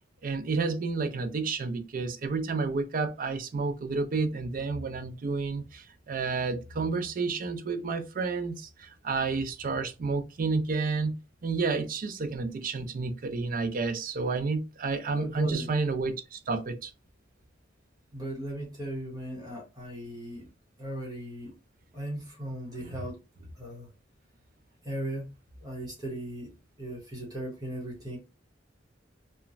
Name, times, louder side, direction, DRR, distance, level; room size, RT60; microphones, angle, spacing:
voice 1, 0.2-11.1 11.4-16.9 22.8-23.0, right 4 dB, 45° right, 0.4 m, -30 dB
voice 2, 15.2-15.7 18.1-20.4 20.8-21.5 21.9-23.2 23.5-23.9 24.8-25.3 25.6-26.5 26.8-28.2, equal, 20° right, 1.0 m, -37 dB
2.9 x 2.2 x 2.5 m
head